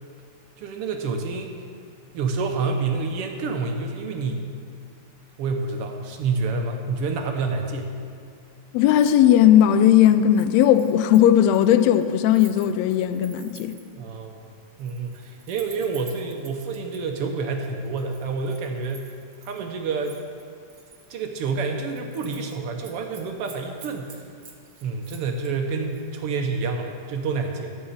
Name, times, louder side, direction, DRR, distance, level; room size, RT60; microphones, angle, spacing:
voice 1, 0.6-1.5 2.1-4.5 5.4-7.9 13.9-14.4 14.8-19.1 19.4-20.2 21.1-24.3 24.8-27.8, right 4 dB, 70° right, 1.4 m, -28 dB
voice 2, 8.7-13.8, left 10 dB, 80° left, 1.6 m, -17 dB
Keys jangling, 8.9-9.2 9.5-14.0 14.7-17.0 17.6-19.6 20.0-21.1 21.5-21.6 21.9-22.6 22.8-25.5 25.9-26.1, right 5 dB, 45° right, 1.3 m, -49 dB
12.5 x 5.6 x 7.0 m
omnidirectional pair, 3.4 m